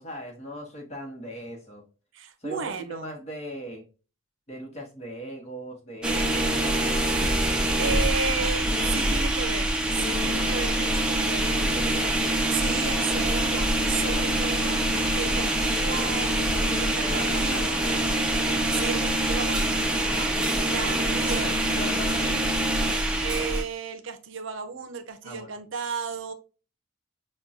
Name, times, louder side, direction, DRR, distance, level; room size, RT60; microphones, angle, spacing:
voice 1, 0.0-1.9 2.4-3.9 4.5-7.1 7.8-8.4 8.8-9.1 11.5-12.1 12.6-12.9 14.0-14.6 17.0-18.0 20.0-20.4 20.7-22.6 25.2-25.6, right 1 dB, 30° left, 0.9 m, -39 dB
voice 2, 2.1-3.1 7.8-11.6 12.5-14.8 15.1-17.2 17.5-17.7 18.7-19.9 20.7-21.7 23.2-26.3, right 5 dB, 65° right, 0.6 m, -34 dB
sound 1, 6.0-23.6, right 1 dB, 5° right, 0.5 m, -25 dB
5.9 x 2.2 x 2.5 m
head